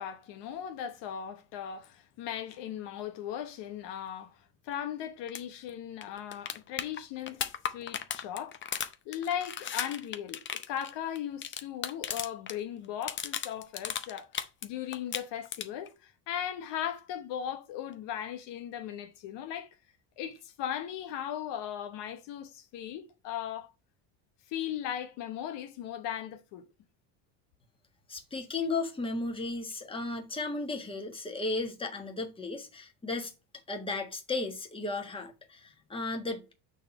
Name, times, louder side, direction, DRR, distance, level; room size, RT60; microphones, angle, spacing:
voice 1, 0.0-14.3 14.6-19.7 20.2-23.7 24.5-26.7, left 10 dB, 70° left, 1.1 m, -38 dB
sound 1, 5.3-5.4 5.7-5.8 6.0-12.6 12.8-14.7 14.9-15.9 17.9-18.0, left 8 dB, 25° left, 0.6 m, -36 dB
voice 2, 28.1-33.3 33.7-36.5, left 3 dB, 10° left, 1.4 m, -35 dB
6.5 x 3.7 x 5.7 m
cardioid pair, 130°, 44 cm